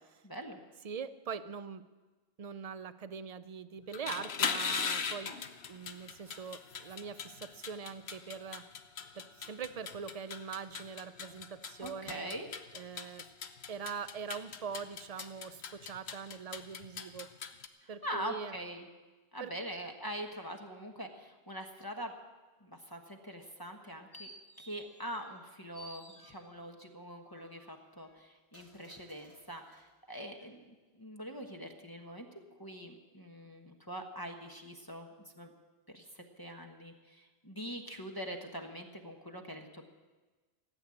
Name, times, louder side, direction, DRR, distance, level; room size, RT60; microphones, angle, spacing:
voice 1, 0.2-0.6 11.8-12.5 17.8-18.9 19.3-22.1 22.6-24.3 24.6-30.7 30.9-35.1 35.4-35.5 35.9-39.8, equal, 20° left, 2 dB, 1.2 m, -43 dB
voice 2, 0.8-1.9 2.4-5.4 5.7-8.7 9.1-12.3 12.7-13.3 13.7-17.3 17.9-18.5 19.4-19.5, right 6 dB, 40° right, 14 dB, 0.6 m, -42 dB
sound 1, 3.8-17.7, left 6 dB, 65° left, 1.1 m, -40 dB
sound 2, 23.6-25.5 25.7-26.8 27.3-29.9 30.4-30.5, equal, 85° left, 4.2 m, -56 dB
16.0 x 8.1 x 9.8 m, 1.3 s
omnidirectional pair, 1.1 m